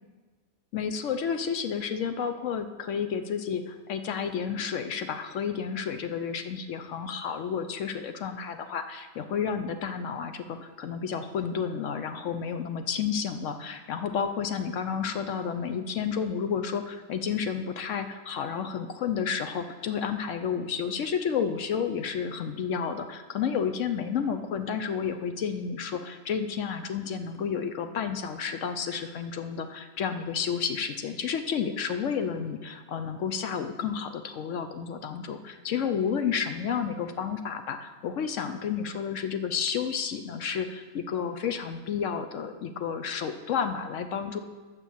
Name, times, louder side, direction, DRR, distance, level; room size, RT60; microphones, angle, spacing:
voice 1, 0.7-44.4, left 7 dB, 65° left, 8 dB, 0.8 m, -31 dB
8.2 x 6.1 x 7.1 m, 1.4 s
omnidirectional pair, 1.6 m